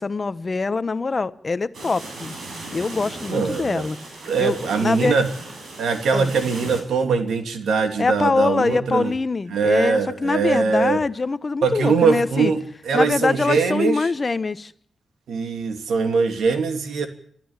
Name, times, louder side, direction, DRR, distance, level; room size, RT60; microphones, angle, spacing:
voice 1, 0.0-2.4 2.7-4.0 4.4-5.1 6.1-6.3 8.0-12.5 12.9-14.7, left 4 dB, 35° left, 1.0 m, -23 dB
sound 1, 1.7-6.8, right 2 dB, 65° right, 7.4 m, -37 dB
voice 2, 3.3-3.8 4.3-5.3 5.8-9.1 9.5-11.0 11.6-14.1 15.3-17.1, right 5 dB, 85° right, 2.9 m, -22 dB
27.0 x 13.5 x 7.4 m
cardioid pair, 100°, 0 cm